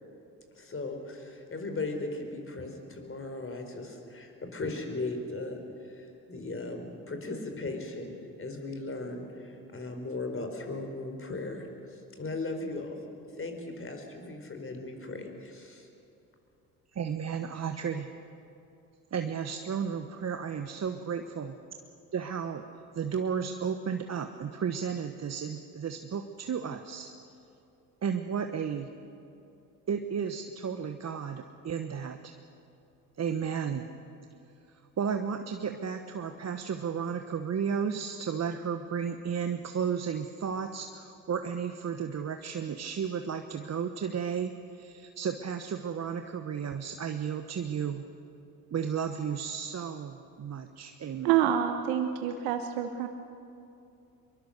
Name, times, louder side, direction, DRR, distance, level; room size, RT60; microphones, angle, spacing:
voice 1, 0.5-8.1 8.4-13.0 13.4-15.9, left 2 dB, 30° left, 4 dB, 4.4 m, -37 dB
voice 2, 16.9-18.1 19.1-21.6 22.1-22.7 22.9-27.1 28.0-28.9 29.9-32.3 33.2-33.9 35.0-48.1 48.7-51.4, right 7 dB, 35° right, 7 dB, 1.2 m, -33 dB
voice 3, 51.2-53.1, right 10 dB, 75° right, 7 dB, 1.2 m, -27 dB
23.0 x 22.0 x 6.7 m, 2.7 s
hypercardioid pair, 60°, 44 cm